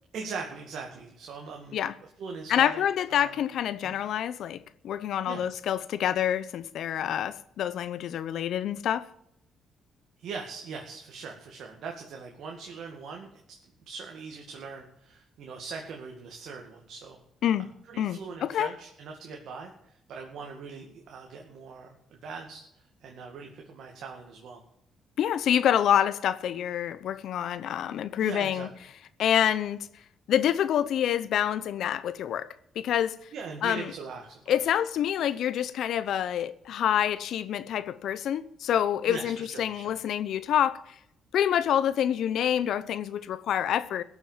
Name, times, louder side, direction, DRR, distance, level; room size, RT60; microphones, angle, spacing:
voice 1, 0.1-1.8 2.2-3.4 3.8-4.0 5.3-5.4 10.2-13.6 13.9-17.2 17.9-24.6 28.2-28.7 33.3-34.6 39.1-39.9, right 5 dB, 70° right, 2.1 m, -41 dB
voice 2, 2.5-9.1 17.4-17.7 18.0-18.7 25.2-28.7 29.2-29.8 30.3-32.5 32.8-33.2 33.6-33.9 34.5-40.8 41.3-44.0, left 10 dB, 75° left, 0.8 m, -27 dB
16.5 x 7.2 x 7.4 m
cardioid pair, 90°, 0 cm